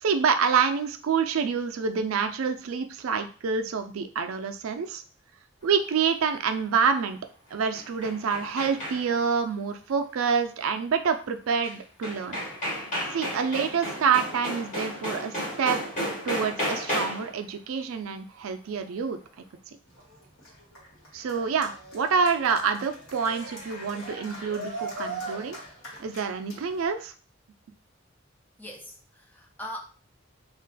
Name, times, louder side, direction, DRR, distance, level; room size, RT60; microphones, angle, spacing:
voice 1, 0.0-5.0 5.6-7.2 7.5-12.4 13.1-19.2 21.1-25.6 26.0-27.1, right 6 dB, 85° right, 7 dB, 0.4 m, -27 dB
sound 1, 7.5-9.3 11.6-11.7 12.0-17.4, equal, 35° left, 1.1 m, -33 dB
Cheering, 19.9-26.9, right 2 dB, 75° left, 1.3 m, -40 dB
voice 2, 28.6-29.8, left 1 dB, 10° left, 2 dB, 0.3 m, -40 dB
2.4 x 2.2 x 3.8 m, 0.39 s
head